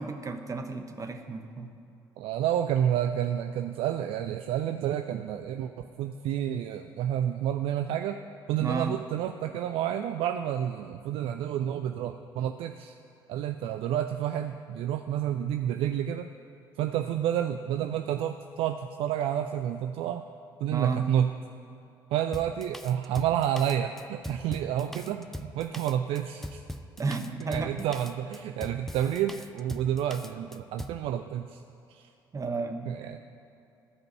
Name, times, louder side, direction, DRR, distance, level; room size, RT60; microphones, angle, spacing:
voice 1, 0.0-1.7 8.6-8.9 20.7-21.1 27.0-27.9 32.3-33.1, right 3 dB, 30° right, 6 dB, 1.0 m, -33 dB
voice 2, 2.2-8.2 8.5-13.0 13.3-16.3 16.8-20.2 20.6-21.3 22.1-26.6 27.4-31.6 31.9-32.1 32.9-33.2, right 10 dB, 55° right, 8 dB, 0.4 m, -29 dB
Drum kit, 22.3-31.0, left 1 dB, 5° left, 0.5 m, -41 dB
14.0 x 5.2 x 7.3 m, 2.8 s
figure-of-eight pair, 50°, 11 cm